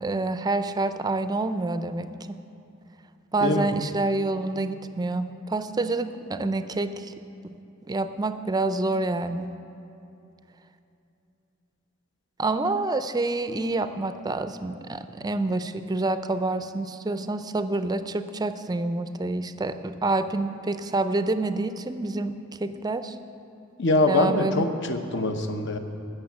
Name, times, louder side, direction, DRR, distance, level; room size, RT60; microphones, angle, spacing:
voice 1, 0.0-2.1 3.3-7.1 7.4-7.5 7.9-9.5 12.4-23.2 24.1-24.7, right 2 dB, 20° right, 10 dB, 0.4 m, -27 dB
voice 2, 23.8-25.8, left 2 dB, 65° left, 6 dB, 0.9 m, -23 dB
15.5 x 6.6 x 7.2 m, 2.8 s
head